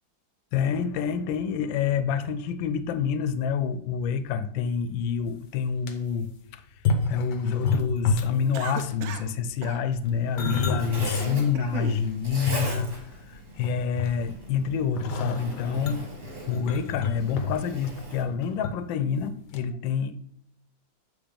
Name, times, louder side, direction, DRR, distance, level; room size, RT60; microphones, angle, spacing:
voice 1, 0.5-6.6 7.1-16.0 16.5-20.2, left 7 dB, 90° left, 12 dB, 1.3 m, -28 dB
sound 1, 5.0-5.1 5.5-5.9 6.7-8.4 8.7-9.1 9.9-11.2 11.7-11.8 12.3-13.3 13.6-14.4 15.0-18.7 19.0-19.2 19.5-19.6, left 4 dB, 70° left, 1.4 m, -29 dB
Cough, 8.5-9.3 9.6-9.8 10.5-10.9 11.3-12.0, right 7 dB, 70° right, 0.8 m, -37 dB
Zipper (clothing), 10.0-18.2, right 1 dB, 30° right, 1.6 m, -40 dB
8.1 x 3.2 x 5.1 m, 0.70 s
omnidirectional pair, 2.0 m